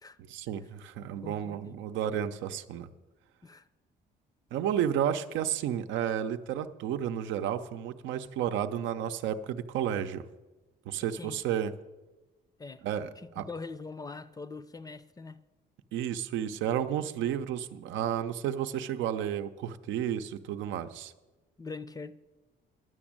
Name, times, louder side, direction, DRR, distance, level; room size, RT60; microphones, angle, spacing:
voice 1, 0.2-2.9 4.5-10.2 10.9-11.7 12.8-13.1 13.4-13.5 15.9-21.1, right 10 dB, 85° right, 0.6 m, -32 dB
voice 2, 1.2-1.8 3.4-3.7 11.0-11.4 12.6-12.8 13.2-15.4 21.6-22.2, left 4 dB, 20° left, 0.5 m, -43 dB
11.0 x 6.1 x 8.7 m
cardioid pair, 100°, 19 cm